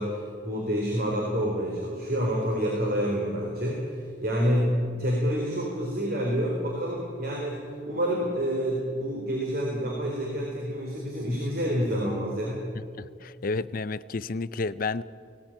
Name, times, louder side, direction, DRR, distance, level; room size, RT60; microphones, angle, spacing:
voice 1, 0.0-12.7, equal, 55° right, -1 dB, 4.0 m, -28 dB
voice 2, 13.0-15.0, left 3 dB, 50° left, 15 dB, 0.6 m, -31 dB
19.5 x 17.5 x 9.0 m, 2.2 s
head